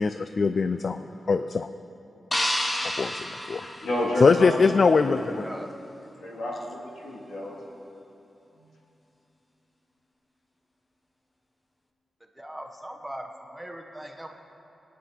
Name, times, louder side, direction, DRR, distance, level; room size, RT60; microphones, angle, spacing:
voice 1, 0.0-1.7 2.8-3.7 4.2-5.5, left 4 dB, 50° left, 10 dB, 0.3 m, -22 dB
sound 1, 2.3-4.6, left 1 dB, 20° left, 1.3 m, -30 dB
voice 2, 3.8-4.7 5.0-5.3 6.2-7.5 8.6-8.7, left 1 dB, 90° left, -5 dB, 3.1 m, -30 dB
voice 3, 5.4-5.7 12.3-14.3, equal, 10° right, 2 dB, 1.2 m, -39 dB
22.0 x 9.5 x 4.6 m, 2.9 s
wide cardioid pair, 95°, 0 cm